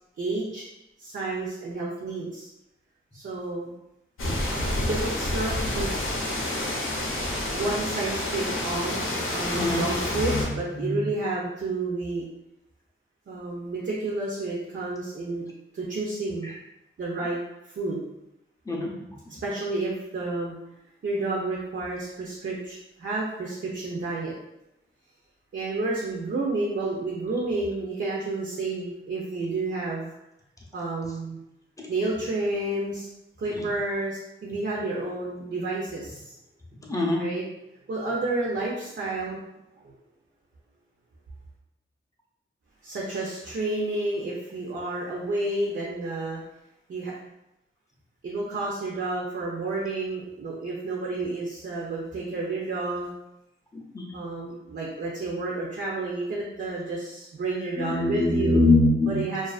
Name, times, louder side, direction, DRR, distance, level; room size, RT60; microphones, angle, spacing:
voice 1, 0.2-0.6 1.0-2.5 3.1-3.7 4.8-6.2 7.5-12.2 13.3-15.5 15.7-16.5 17.0-17.4 17.6-18.0 19.3-20.5 21.0-24.4 25.5-30.1 30.7-31.4 31.9-33.1 33.4-36.3 37.2-37.4 37.9-39.4 39.8-39.9 42.8-46.4 46.9-47.2 48.2-53.1 54.1-58.6 59.1-59.5, right 2 dB, 60° right, -4 dB, 0.5 m, -30 dB
sound 1, 4.2-10.5, left 1 dB, 75° left, 0.6 m, -29 dB
voice 2, 9.5-9.9 10.2-11.1 16.4-16.5 18.7-19.0 33.5-33.7 36.9-37.2 53.7-54.0 57.8-59.2, left 2 dB, 15° left, -2 dB, 0.5 m, -24 dB
2.4 x 2.3 x 2.4 m, 0.87 s
wide cardioid pair, 100°, 21 cm